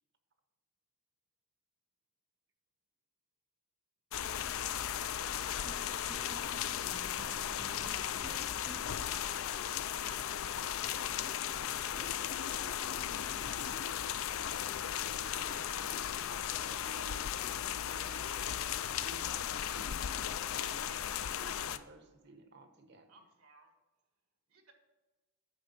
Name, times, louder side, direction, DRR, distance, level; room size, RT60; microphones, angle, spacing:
sound 1, 4.1-21.8, left 10 dB, 60° left, 0.4 m, -36 dB
sound 2, 5.7-9.2, right 2 dB, 30° right, 0.5 m, -51 dB
voice 1, 6.5-7.4 8.0-9.9 10.2-10.3 15.3-20.9 21.3-23.1, right 3 dB, 50° right, 1.1 m, -56 dB
sound 3, 9.8-14.7, left 3 dB, 80° left, 0.9 m, -52 dB
voice 2, 10.8-13.3, left 1 dB, 15° left, 0.6 m, -58 dB
voice 3, 23.1-23.7 24.5-24.7, right 3 dB, 70° right, 1.7 m, -64 dB
9.1 x 6.1 x 5.7 m
head